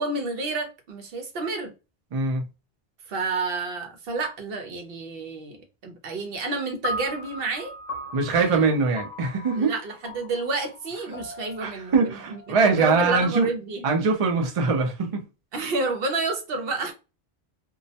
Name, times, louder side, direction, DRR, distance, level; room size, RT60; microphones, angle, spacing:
voice 1, 0.0-1.7 3.1-7.7 8.4-8.7 9.6-13.8 15.5-16.9, right 3 dB, 70° right, 0.8 m, -30 dB
voice 2, 2.1-2.5 8.1-9.7 11.6-13.5 13.8-15.2, right 4 dB, 45° right, 0.5 m, -22 dB
sound 1, 6.8-13.3, left 1 dB, 65° left, 0.7 m, -38 dB
2.3 x 2.0 x 2.7 m
omnidirectional pair, 1.0 m